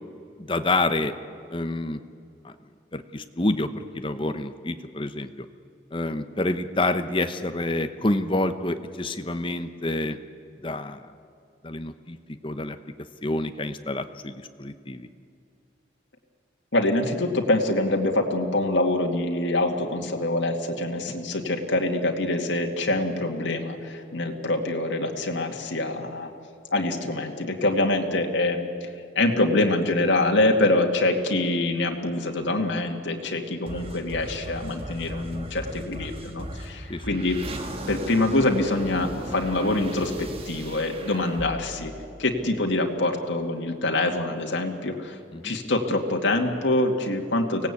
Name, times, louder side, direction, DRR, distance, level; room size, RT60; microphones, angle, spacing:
voice 1, 0.4-1.1 1.5-2.0 2.4-2.5 2.9-5.5 5.9-10.2 10.6-11.1 11.6-12.2 12.4-12.8 13.2-15.1 21.1-21.2 36.9-37.0 45.3-45.5, left 2 dB, 25° left, 9 dB, 0.9 m, -28 dB
voice 2, 16.7-26.3 26.7-28.9 29.2-37.4 37.9-41.9 42.2-45.2 45.4-47.7, left 2 dB, 85° left, 2 dB, 2.2 m, -25 dB
sound 1, 33.7-43.0, right 1 dB, 30° right, 1.8 m, -37 dB
24.5 x 17.5 x 8.5 m, 2.4 s
head